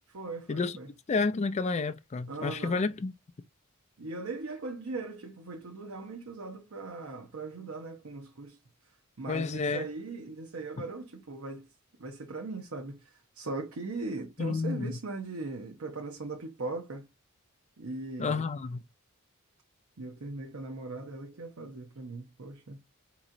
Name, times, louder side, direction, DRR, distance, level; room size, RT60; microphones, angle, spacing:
voice 1, 0.1-0.9 2.3-2.9 4.0-8.6 9.2-11.7 12.0-17.1 17.8-18.5 20.0-22.8, right 3 dB, 70° right, 0.8 m, -39 dB
voice 2, 1.1-3.1 9.3-9.9 14.4-14.9 18.2-18.8, left 4 dB, 30° left, 0.4 m, -30 dB
4.8 x 3.0 x 2.6 m
head